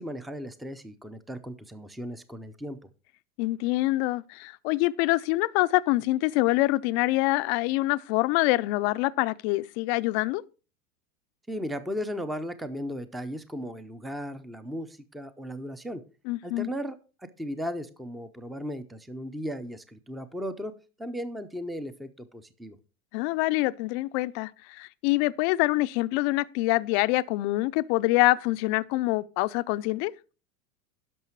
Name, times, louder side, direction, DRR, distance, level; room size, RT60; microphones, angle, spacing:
voice 1, 0.0-2.8 11.5-16.0 16.4-17.0 17.4-20.7 21.0-22.8, equal, ahead, 0.5 m, -36 dB
voice 2, 3.4-10.4 16.3-16.7 23.1-30.1, left 20 dB, 50° left, 0.5 m, -25 dB
11.0 x 6.2 x 4.6 m
hypercardioid pair, 100°, 44 cm